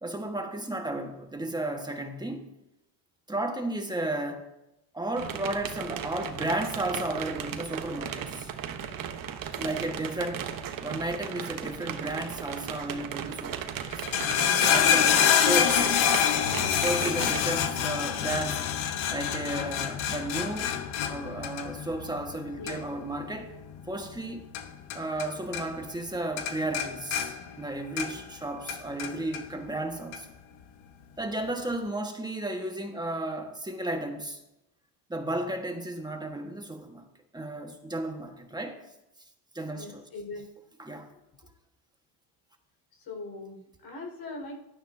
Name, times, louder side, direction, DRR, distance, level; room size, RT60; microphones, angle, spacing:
voice 1, 0.0-2.5 3.3-4.4 4.9-8.5 9.6-10.5 10.8-14.0 14.7-15.9 16.7-18.7 19.1-20.7 21.1-23.5 23.9-24.5 24.9-30.3 31.2-34.4 35.1-37.1 37.3-38.8 39.5-40.0 40.8-41.1, right 1 dB, 10° right, 1.5 m, -33 dB
sound 1, 5.2-17.4, right 8 dB, 45° right, 1.2 m, -36 dB
sound 2, 13.9-25.3 25.5-26.1 26.4-28.3 28.7-29.4 30.1-30.2, left 8 dB, 70° left, 1.5 m, -27 dB
voice 2, 39.7-40.5 43.1-44.7, left 3 dB, 50° left, 5.2 m, -41 dB
16.0 x 12.0 x 2.8 m
cardioid pair, 110°, 48 cm